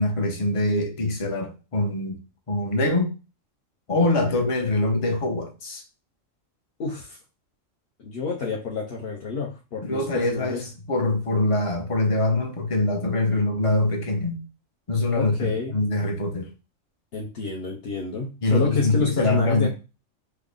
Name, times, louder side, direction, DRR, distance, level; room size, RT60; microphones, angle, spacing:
voice 1, 0.0-2.2 2.5-3.1 3.9-5.8 9.9-14.4 14.9-16.5 18.4-19.7, left 2 dB, 35° left, 0.6 m, -24 dB
voice 2, 6.8-7.2 8.0-10.7 13.3-13.4 15.1-15.8 17.1-19.7, left 4 dB, 55° left, 0.9 m, -29 dB
3.3 x 2.0 x 3.6 m
omnidirectional pair, 1.3 m